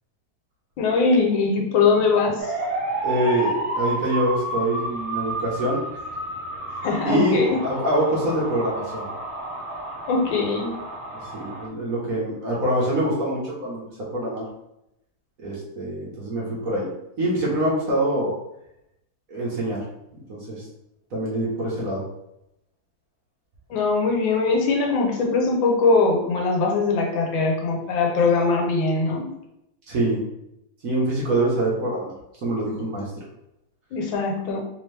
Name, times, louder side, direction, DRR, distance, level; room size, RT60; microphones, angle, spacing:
voice 1, 0.8-2.5 6.8-7.6 10.1-10.8 23.7-29.3 33.9-34.6, left 4 dB, 80° left, 1 dB, 1.5 m, -21 dB
sound 1, 2.4-11.7, right 1 dB, 85° right, 0.4 m, -31 dB
voice 2, 3.0-5.8 6.7-6.8 7.0-7.4 7.6-9.1 11.2-13.8 14.1-14.5 15.4-16.9 17.2-18.3 19.3-19.8 20.3-20.6 21.1-22.0 29.9-30.2 30.8-32.1 32.4-33.1, right 1 dB, 55° right, -5 dB, 1.2 m, -24 dB
3.5 x 2.9 x 3.2 m, 0.83 s
omnidirectional pair, 2.1 m